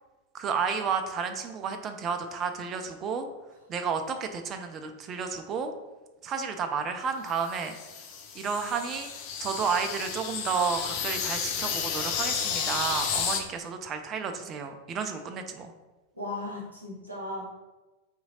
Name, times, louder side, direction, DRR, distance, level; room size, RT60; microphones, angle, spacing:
voice 1, 0.3-3.3 3.7-5.7 6.2-7.7 8.4-9.1 9.4-15.7, right 6 dB, 30° right, 6 dB, 0.3 m, -31 dB
sound 1, 7.3-13.4, left 7 dB, 45° left, 0.4 m, -32 dB
voice 2, 16.1-17.5, left 1 dB, 90° left, -6 dB, 1.1 m, -36 dB
3.6 x 2.7 x 2.8 m, 1.1 s
figure-of-eight pair, 90°, 0 cm